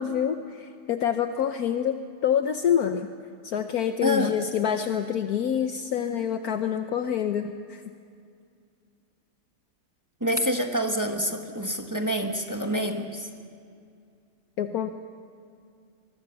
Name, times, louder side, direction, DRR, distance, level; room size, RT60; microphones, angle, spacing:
voice 1, 0.0-3.1 3.4-7.8 14.6-15.0, left 8 dB, 70° left, 7 dB, 1.3 m, -27 dB
voice 2, 4.0-4.4 10.2-13.3, equal, 10° right, 4 dB, 1.3 m, -27 dB
24.5 x 21.5 x 7.1 m, 2.3 s
omnidirectional pair, 1.8 m